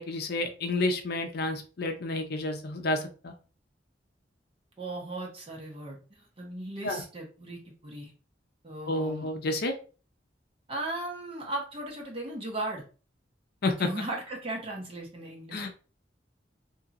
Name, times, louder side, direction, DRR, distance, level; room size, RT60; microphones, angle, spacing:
voice 1, 0.0-3.3 6.8-7.0 8.9-9.7 13.6-13.9 15.5-15.7, left 2 dB, 60° left, 6 dB, 0.5 m, -30 dB
voice 2, 4.8-8.1 8.6-9.3 10.7-12.8 13.8-15.7, right 2 dB, 30° right, -1 dB, 0.9 m, -37 dB
2.8 x 2.8 x 2.4 m, 0.36 s
head